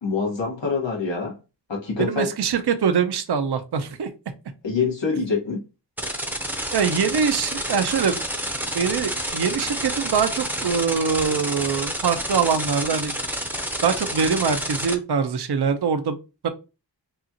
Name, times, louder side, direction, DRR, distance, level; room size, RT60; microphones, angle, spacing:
voice 1, 0.0-1.3 1.7-2.3 4.6-5.6, left 5 dB, 80° left, 1.6 m, -25 dB
voice 2, 2.0-4.1 6.7-8.2 8.7-13.2 13.8-16.2 16.4-16.5, right 6 dB, 65° right, 0.7 m, -23 dB
sound 1, 6.0-14.9, equal, 5° right, 0.7 m, -29 dB
5.6 x 2.4 x 2.8 m
wide cardioid pair, 80°, 43 cm